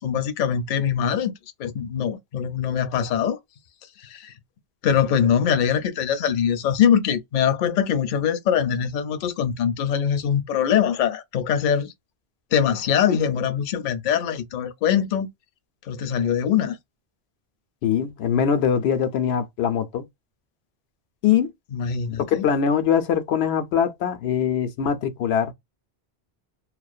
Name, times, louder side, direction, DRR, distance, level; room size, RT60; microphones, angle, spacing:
voice 1, 0.0-1.3 1.6-3.4 4.1-4.3 4.8-11.9 12.5-15.3 15.9-16.8 21.7-22.4, left 8 dB, 60° left, 0.6 m, -22 dB
voice 2, 17.8-20.1 21.2-21.5 22.3-25.5, left 8 dB, 90° left, 0.8 m, -22 dB
2.4 x 2.1 x 2.4 m
omnidirectional pair, 1.0 m